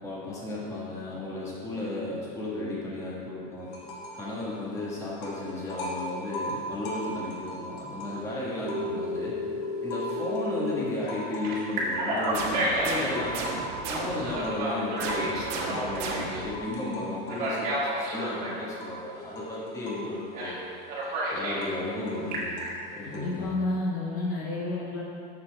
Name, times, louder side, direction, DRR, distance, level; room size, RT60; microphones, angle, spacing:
voice 1, 0.0-3.7 4.1-9.3 9.8-13.5 13.9-20.6 21.3-22.5 22.9-23.5, left 2 dB, 15° left, -6 dB, 1.3 m, -34 dB
sound 1, 3.7-4.3 4.6-9.2 9.6-23.5, equal, 65° left, 1.5 m, -40 dB
Telephone, 8.6-10.9 11.4-13.2 14.2-16.4 17.3-18.6 20.3-20.6 20.9-21.7 22.1-22.7, right 1 dB, 40° right, 1.8 m, -31 dB
sound 2, 12.3-14.4 15.0-16.6, right 4 dB, 65° right, 1.2 m, -35 dB
voice 2, 23.0-25.0, left 2 dB, 45° left, -4 dB, 1.1 m, -30 dB
8.3 x 6.6 x 3.3 m, 2.4 s
cardioid pair, 170°, 21 cm